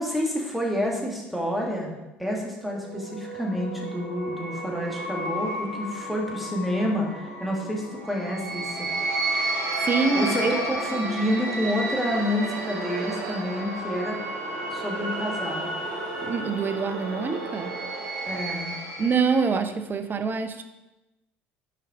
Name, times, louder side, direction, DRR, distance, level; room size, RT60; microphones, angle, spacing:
voice 1, 0.0-1.9 2.2-8.9 10.1-14.2 14.7-15.7 18.3-18.7, equal, ahead, -2 dB, 1.7 m, -28 dB
sound 1, 2.7-19.5, right 2 dB, 60° right, 1.0 m, -32 dB
voice 2, 9.8-10.5 16.2-17.8 19.0-20.6, right 5 dB, 30° right, 8 dB, 0.6 m, -25 dB
5.7 x 4.6 x 3.6 m, 1.0 s
hypercardioid pair, 65°, 6 cm